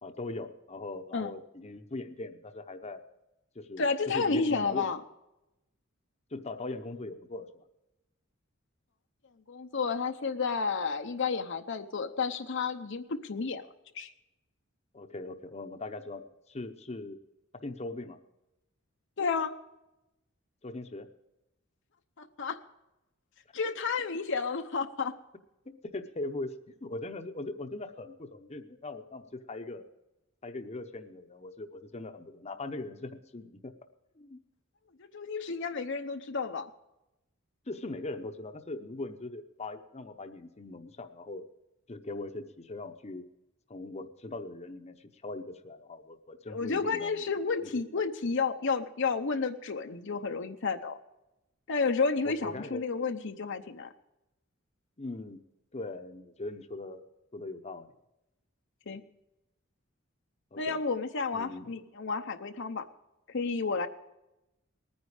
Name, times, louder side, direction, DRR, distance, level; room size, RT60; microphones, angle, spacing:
voice 1, 0.0-3.0 3.5-4.9 6.3-7.6 14.9-17.2 17.6-18.2 20.6-21.1 25.7-26.5 26.8-29.8 30.4-33.7 34.2-34.4 37.7-41.5 41.9-43.3 43.7-47.2 47.6-47.7 52.2-52.8 55.0-55.4 55.7-57.0 57.3-57.9 60.5-60.8 61.3-61.7, left 2 dB, 35° left, 7 dB, 0.8 m, -40 dB
voice 2, 3.8-5.0 9.5-13.7 13.9-14.1 19.2-19.5 22.2-22.6 23.5-25.1 35.0-36.7 46.5-51.0 51.7-53.9 58.9-59.0 60.6-62.9 63.3-63.9, left 4 dB, 65° left, 6 dB, 0.8 m, -31 dB
19.5 x 9.6 x 4.9 m, 0.93 s
head